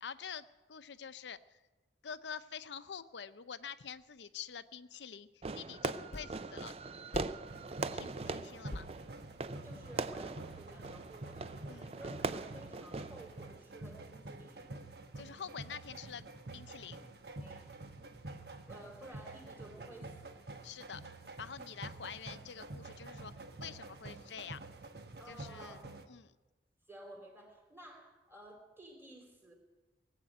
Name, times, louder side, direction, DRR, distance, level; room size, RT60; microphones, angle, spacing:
voice 1, 0.0-1.4 2.0-5.3 5.5-6.7 7.9-8.9 11.7-11.9 15.2-16.3 16.5-17.1 20.6-21.0 21.4-23.3 23.6-24.6 25.3-25.8 26.1-26.3, left 7 dB, 90° left, 13 dB, 0.6 m, -46 dB
sound 1, 4.0-4.1 6.1-6.6 7.1-7.8 8.2-8.3 8.7-9.9, left 1 dB, 40° left, 0.7 m, -46 dB
Fireworks, 5.4-13.5, right 3 dB, 35° right, 0.4 m, -41 dB
sound 2, 7.5-26.0, right 2 dB, 70° right, 1.2 m, -48 dB
voice 2, 9.6-14.7 17.4-17.7 18.5-20.4 25.2-25.9 26.9-29.5, right 1 dB, 15° right, 1 dB, 3.2 m, -54 dB
19.0 x 8.3 x 9.2 m, 1.2 s
head